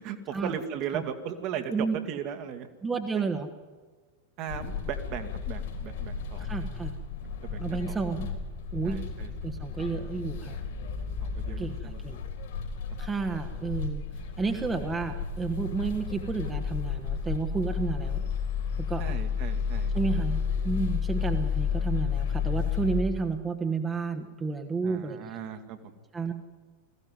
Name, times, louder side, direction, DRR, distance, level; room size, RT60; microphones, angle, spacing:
voice 1, 0.0-2.7 3.1-3.3 4.4-6.5 7.4-8.0 8.8-9.3 11.2-12.0 19.0-19.9 24.8-25.9, right 8 dB, 40° right, 7 dB, 2.0 m, -37 dB
voice 2, 2.8-3.5 6.4-6.9 7.6-8.3 8.7-9.0 9.4-10.6 11.6-12.2 13.0-14.0 14.4-18.2 18.8-19.0 19.9-25.4 26.1-26.3, right 4 dB, 15° right, 6 dB, 1.5 m, -31 dB
sound 1, 4.5-23.0, left 6 dB, 55° left, 3.6 m, -32 dB
21.0 x 15.0 x 9.6 m, 1.4 s
figure-of-eight pair, 90°, 0 cm